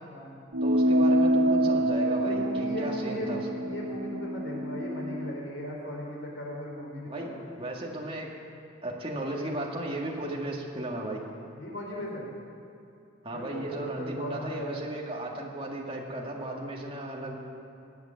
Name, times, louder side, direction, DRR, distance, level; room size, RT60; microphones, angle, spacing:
sound 1, 0.5-5.3, right 1 dB, 65° right, 0.7 m, -26 dB
voice 1, 0.6-3.4 7.1-7.3 7.6-8.3 8.8-11.2 13.2-17.4, right 1 dB, 25° right, -1 dB, 2.0 m, -35 dB
voice 2, 2.2-7.4 11.5-12.3 13.3-14.9, equal, 60° left, -2 dB, 4.2 m, -37 dB
18.5 x 8.4 x 9.1 m, 2.6 s
head